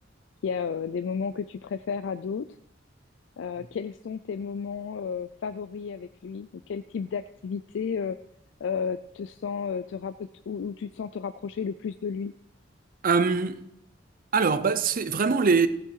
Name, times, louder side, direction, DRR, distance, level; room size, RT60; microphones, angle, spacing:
voice 1, 0.4-2.5 3.4-8.2 8.6-12.3, left 6 dB, 70° left, 0.4 m, -32 dB
voice 2, 13.0-13.6 14.3-15.7, right 5 dB, 50° right, 0.6 m, -22 dB
15.5 x 7.3 x 4.7 m
head